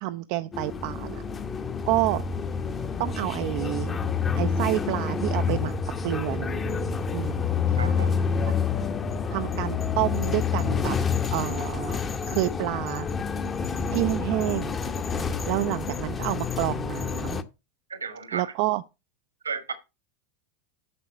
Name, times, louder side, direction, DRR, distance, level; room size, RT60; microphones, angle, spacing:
voice 1, 0.0-1.2 1.9-2.2 3.0-3.9 4.3-5.7 6.0-6.6 7.1-7.5 9.3-11.0 11.3-12.0 12.3-13.1 13.9-14.8 15.5-17.4 18.3-18.8, right 17 dB, 55° right, 0.5 m, -28 dB
sound 1, 0.5-17.4, left 5 dB, 25° left, 1.0 m, -28 dB
voice 2, 7.8-8.1 17.9-18.5 19.4-19.7, right 5 dB, 85° right, 1.5 m, -33 dB
8.6 x 6.0 x 5.8 m
figure-of-eight pair, 85°, 0 cm